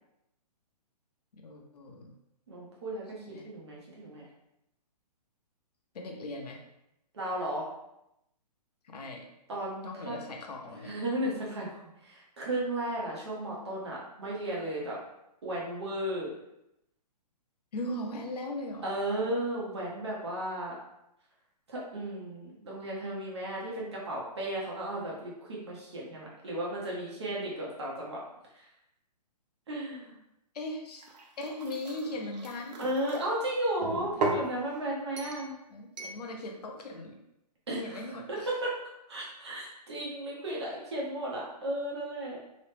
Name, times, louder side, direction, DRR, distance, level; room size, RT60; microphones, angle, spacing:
voice 1, 1.4-2.1 3.2-3.5 5.9-6.6 8.8-9.2 9.8-10.9 17.7-18.9 19.2-19.3 30.5-31.1 31.4-32.9 33.8-33.9 34.2-34.3 35.7-37.2 37.8-38.5, left 1 dB, 70° left, 1 dB, 0.7 m, -39 dB
voice 2, 2.5-4.2 7.1-7.7 9.5-10.2 10.8-15.0 15.4-16.3 18.8-20.7 21.7-28.2 28.5-28.6 29.7-30.1 32.8-35.5 37.7-38.0 38.3-38.8 39.1-42.4, right 1 dB, 40° right, -4 dB, 0.6 m, -34 dB
sound 1, 30.9-33.2 33.8-34.5 35.2-35.5 36.0-36.2, right 3 dB, 80° right, 0.6 m, -35 dB
2.9 x 2.0 x 3.1 m, 0.85 s
hypercardioid pair, 175°, 21 cm